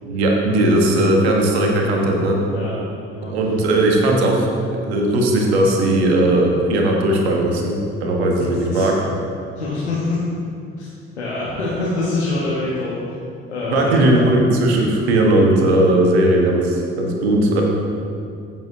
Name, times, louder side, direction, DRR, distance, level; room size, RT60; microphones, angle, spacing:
voice 1, 0.0-2.4 3.3-4.5 4.8-8.9 13.7-17.6, right 1 dB, 75° right, 0 dB, 1.5 m, -17 dB
voice 2, 8.3-8.9 9.6-10.2 10.8-10.9 11.2-13.0 13.5-14.1, left 2 dB, 85° left, -7 dB, 1.4 m, -25 dB
15.0 x 7.5 x 2.9 m, 2.4 s
figure-of-eight pair, 55°, 32 cm